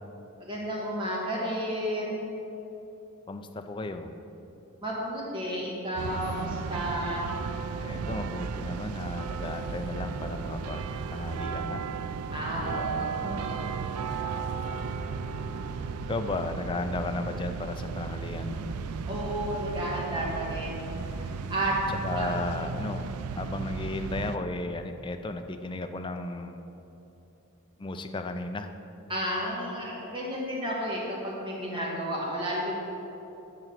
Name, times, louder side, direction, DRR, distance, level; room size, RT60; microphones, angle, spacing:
voice 1, 0.4-2.2 4.8-7.3 12.3-14.5 19.1-20.8 21.1-21.2 21.5-21.7 22.2-22.3 23.6-23.8 29.1-32.7, equal, 20° right, -4 dB, 1.6 m, -32 dB
voice 2, 3.3-4.1 7.8-11.8 12.6-12.9 16.1-18.6 22.0-23.1 23.4-26.6 27.8-28.7, left 2 dB, 20° left, 7 dB, 0.4 m, -34 dB
sound 1, 6.0-24.4, right 5 dB, 85° right, 0.4 m, -35 dB
10.5 x 3.9 x 7.6 m, 3.0 s
head